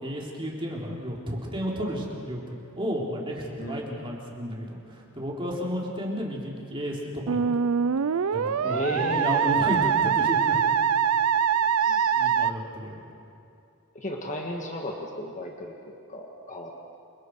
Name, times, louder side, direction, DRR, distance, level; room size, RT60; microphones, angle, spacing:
voice 1, 0.0-7.4 8.3-10.6 11.8-13.0, equal, 25° right, -3 dB, 3.7 m, -32 dB
voice 2, 3.6-3.9 8.6-9.3 11.8-12.1 14.0-17.0, left 1 dB, 35° left, 0 dB, 1.9 m, -35 dB
Musical instrument, 7.3-12.5, right 7 dB, 85° right, 0.5 m, -23 dB
29.0 x 26.0 x 4.8 m, 2.6 s
head